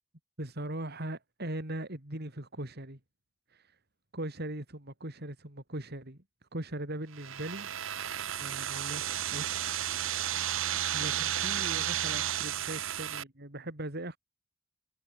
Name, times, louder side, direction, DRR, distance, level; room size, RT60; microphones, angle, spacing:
voice 1, 0.4-3.0 3.5-3.7 4.1-6.2 6.5-7.7 8.4-9.6 10.9-14.2, right 1 dB, 50° right, 3.8 m, -40 dB
sound 1, 7.1-13.2, right 11 dB, 70° right, 1.0 m, -33 dB
head